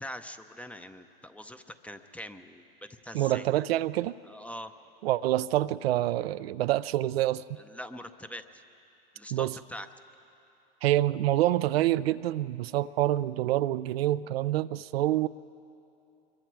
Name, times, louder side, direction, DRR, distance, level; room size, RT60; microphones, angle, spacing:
voice 1, 0.0-3.5 4.3-4.7 7.6-8.6 9.1-9.9, equal, 5° left, 9 dB, 0.7 m, -43 dB
voice 2, 3.1-4.2 5.0-7.4 9.3-9.5 10.8-15.3, right 14 dB, 70° right, 14 dB, 0.5 m, -27 dB
25.5 x 22.5 x 4.7 m, 2.8 s
hypercardioid pair, 105°, 32 cm